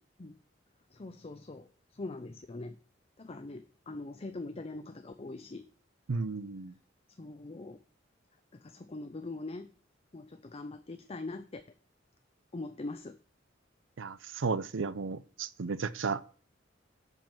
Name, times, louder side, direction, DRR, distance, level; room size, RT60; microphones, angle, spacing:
voice 1, 0.9-2.8 3.2-5.6 7.2-7.8 8.5-9.7 10.1-11.6 12.5-13.2, left 2 dB, 30° left, 0.5 m, -42 dB
voice 2, 6.1-6.7 14.0-16.2, right 4 dB, 85° right, 0.6 m, -34 dB
7.4 x 5.4 x 7.2 m
head